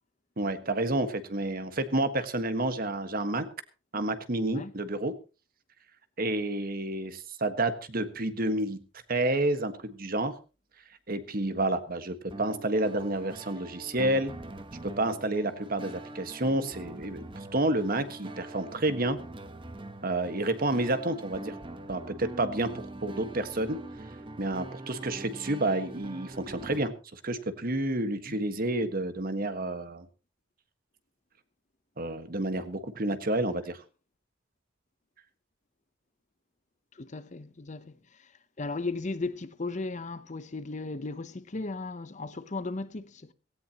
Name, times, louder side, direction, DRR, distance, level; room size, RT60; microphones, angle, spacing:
voice 1, 0.4-3.5 3.9-5.1 6.2-8.8 9.1-10.3 11.1-14.3 14.8-19.2 20.0-21.6 21.9-23.8 24.4-30.1 32.0-33.8, right 2 dB, 45° right, 1.5 m, -30 dB
sound 1, 12.3-26.9, right 2 dB, 25° right, 1.0 m, -43 dB
voice 2, 36.9-38.3 38.6-43.3, left 3 dB, 40° left, 0.8 m, -36 dB
17.0 x 17.0 x 2.9 m
head